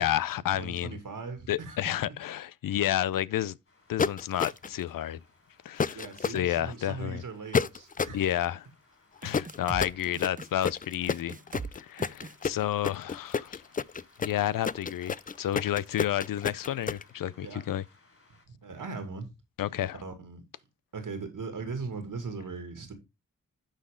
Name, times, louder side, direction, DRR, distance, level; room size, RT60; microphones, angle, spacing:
voice 1, 0.0-1.0 1.5-3.6 3.9-5.2 5.6-7.2 8.1-8.7 9.2-11.4 11.7-13.6 14.2-17.8 19.6-20.0, left 12 dB, 80° left, 0.5 m, -30 dB
voice 2, 0.6-1.8 5.9-8.2 17.4-17.6 18.5-19.3 20.0-20.4 20.9-22.9, right 4 dB, 70° right, 2.3 m, -39 dB
sound 1, 3.7-18.5, left 2 dB, 40° left, 4.4 m, -63 dB
sound 2, 4.0-4.8 5.8-6.4 7.5-8.2 9.3-17.0, left 5 dB, 25° left, 0.4 m, -30 dB
sound 3, 9.2-9.9 10.1-10.5 11.1-11.7 12.0-12.3, right 5 dB, 25° right, 0.5 m, -40 dB
11.5 x 4.2 x 3.7 m
cardioid pair, 45°, 33 cm